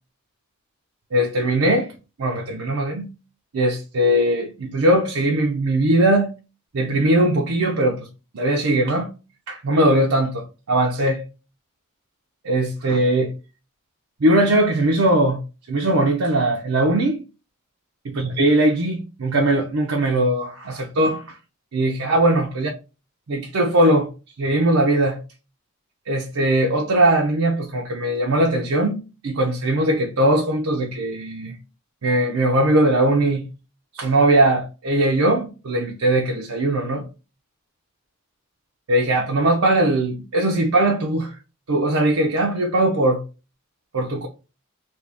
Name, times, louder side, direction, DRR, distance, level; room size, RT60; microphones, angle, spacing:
voice 1, 1.1-1.9 2.2-3.1 3.5-6.3 6.7-8.1 8.3-9.1 9.5-11.2 12.4-13.3 14.2-15.4 15.7-17.2 18.1-21.4 21.7-22.7 23.3-24.1 24.4-25.2 26.1-29.0 29.2-31.5 32.0-33.4 33.9-37.1 38.9-41.4 41.7-43.3 43.9-44.3, right 1 dB, 75° right, 0.6 m, -20 dB
2.8 x 2.7 x 3.3 m
head